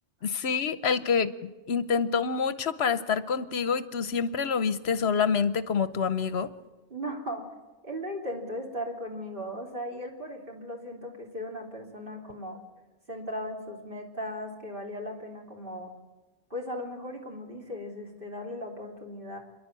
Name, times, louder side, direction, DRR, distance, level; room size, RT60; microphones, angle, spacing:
voice 1, 0.2-6.5, left 6 dB, 60° left, 14 dB, 1.0 m, -27 dB
voice 2, 6.9-7.5 7.8-12.6 13.1-15.9 16.5-19.4, equal, 45° right, 1 dB, 3.5 m, -37 dB
28.5 x 11.0 x 8.9 m, 1.2 s
omnidirectional pair, 1.3 m